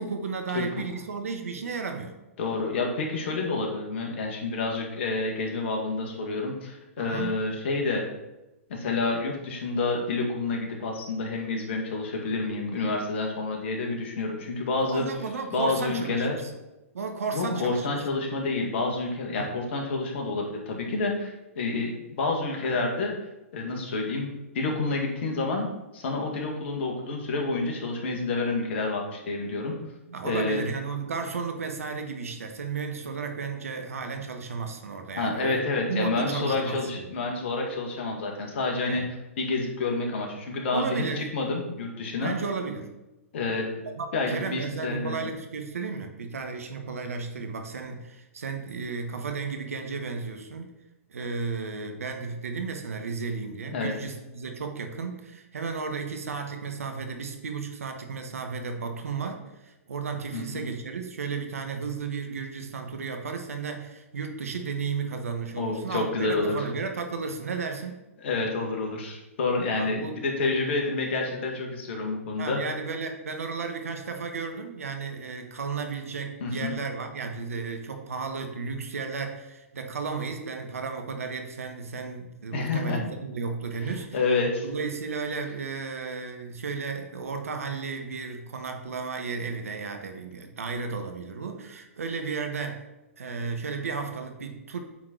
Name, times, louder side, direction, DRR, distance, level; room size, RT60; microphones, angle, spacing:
voice 1, 0.0-2.2 7.0-7.4 14.8-16.5 16.9-17.9 19.3-19.5 30.1-37.0 38.9-39.1 40.7-41.2 42.2-42.9 43.9-50.7 51.1-68.1 69.8-70.2 72.4-84.2 84.6-92.8 93.2-94.8, right 5 dB, 75° right, 5 dB, 1.2 m, -34 dB
voice 2, 2.4-8.0 8.7-15.1 15.5-16.4 17.3-23.1 23.5-24.3 24.5-25.7 25.9-29.7 30.2-30.6 35.2-39.0 39.4-42.3 43.3-43.7 44.1-45.3 53.7-53.9 60.3-60.6 65.6-66.5 68.2-72.6 76.4-76.7 82.5-83.0 84.1-84.6, left 3 dB, 55° left, 1 dB, 2.0 m, -28 dB
8.5 x 4.3 x 4.5 m, 0.97 s
hypercardioid pair, 120°, 8 cm